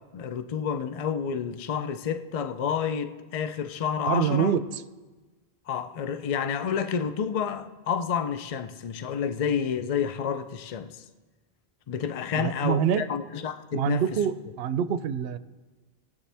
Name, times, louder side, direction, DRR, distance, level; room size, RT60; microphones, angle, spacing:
voice 1, 0.1-4.5 5.7-11.0 11.9-14.0, left 7 dB, 45° left, 0.5 m, -29 dB
voice 2, 4.0-4.6 12.3-13.1 13.7-15.4, right 8 dB, 75° right, 0.8 m, -25 dB
19.5 x 8.2 x 3.4 m
omnidirectional pair, 1.1 m